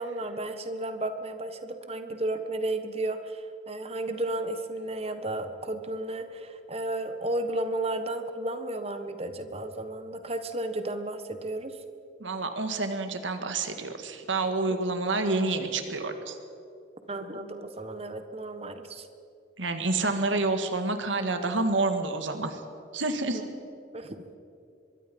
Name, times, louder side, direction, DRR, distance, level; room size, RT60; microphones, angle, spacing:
voice 1, 0.0-11.8 17.1-19.1 23.3-23.5 23.9-24.2, right 2 dB, 30° right, 8 dB, 1.4 m, -33 dB
voice 2, 12.2-16.4 19.6-22.6 22.9-23.4, right 3 dB, 80° right, 7 dB, 1.9 m, -28 dB
24.5 x 22.5 x 5.4 m, 2.6 s
head